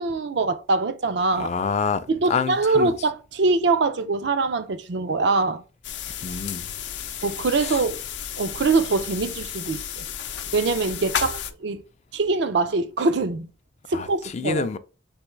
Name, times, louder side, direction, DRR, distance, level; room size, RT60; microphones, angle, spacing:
voice 1, 0.0-1.5 2.1-5.6 7.2-8.0 8.4-10.1 10.5-11.8 12.1-13.5 13.9-14.7, right 3 dB, 75° right, 0.5 m, -23 dB
voice 2, 1.4-2.9 6.2-6.7 7.6-7.8 13.9-14.1 14.3-14.8, left 5 dB, 40° left, 0.4 m, -27 dB
sound 1, 5.8-11.5, left 8 dB, 90° left, 0.5 m, -32 dB
4.4 x 3.5 x 3.1 m
head